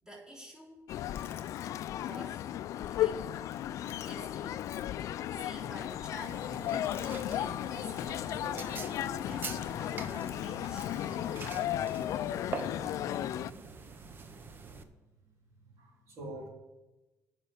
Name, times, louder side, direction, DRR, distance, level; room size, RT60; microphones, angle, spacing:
voice 1, 0.0-0.9 2.0-2.4 2.9-3.3 4.1-4.8 5.3-10.9, equal, 10° right, -4 dB, 3.6 m, -49 dB
sound 1, 0.9-13.5, left 12 dB, 65° left, 0.4 m, -35 dB
Chewing mastication, 1.1-11.6, left 6 dB, 45° left, 1.2 m, -57 dB
sound 2, 6.2-14.8, right 4 dB, 35° right, 1.0 m, -44 dB
voice 2, 15.6-16.5, right 1 dB, 55° right, -3 dB, 3.7 m, -47 dB
9.7 x 6.0 x 8.5 m, 1.1 s
cardioid pair, 115°, 6 cm